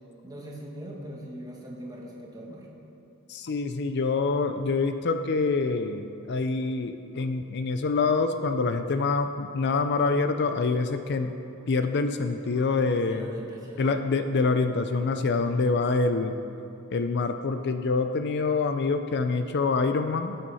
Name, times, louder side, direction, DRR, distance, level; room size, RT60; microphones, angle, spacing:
voice 1, 0.2-2.7 13.1-13.9 15.4-15.7, equal, 15° right, -2 dB, 1.6 m, -41 dB
voice 2, 3.3-11.3 11.7-13.3 13.8-16.4 16.9-20.4, left 4 dB, 50° left, 8 dB, 0.5 m, -26 dB
18.5 x 7.7 x 4.1 m, 2.9 s
head